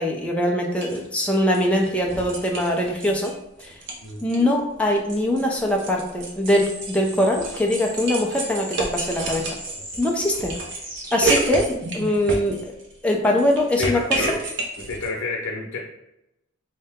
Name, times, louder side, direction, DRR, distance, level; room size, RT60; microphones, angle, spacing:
voice 1, 0.0-3.3 3.6-3.8 4.2-9.4 10.0-10.5 11.1-12.7 13.0-14.2, left 1 dB, 5° left, 0 dB, 0.4 m, -22 dB
sound 1, 0.8-1.0 1.3-3.3 3.6-4.4 4.7-12.9 13.2-15.1, right 3 dB, 55° right, 0.7 m, -30 dB
sound 2, 6.4-12.3, right 1 dB, 40° right, 1.0 m, -37 dB
voice 2, 13.8-14.4 14.8-15.8, left 3 dB, 90° left, -2 dB, 0.7 m, -29 dB
3.3 x 2.8 x 3.5 m, 0.87 s
head